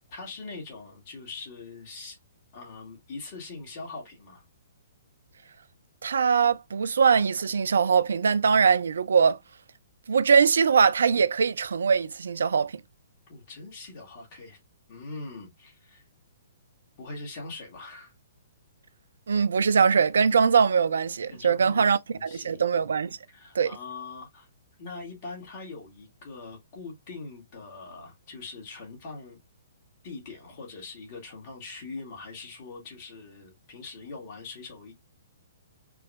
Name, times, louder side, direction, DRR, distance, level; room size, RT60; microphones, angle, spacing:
voice 1, 0.0-2.2 2.5-4.4 13.3-14.6 14.9-16.0 17.0-18.1 21.3-22.6 23.3-24.5 24.8-29.4 30.0-34.9, left 3 dB, 40° left, 2.3 m, -42 dB
voice 2, 6.0-9.4 10.1-12.8 19.3-23.2 23.5-23.8, right 6 dB, 65° right, 0.4 m, -22 dB
4.6 x 2.9 x 2.5 m
figure-of-eight pair, 120°, 0 cm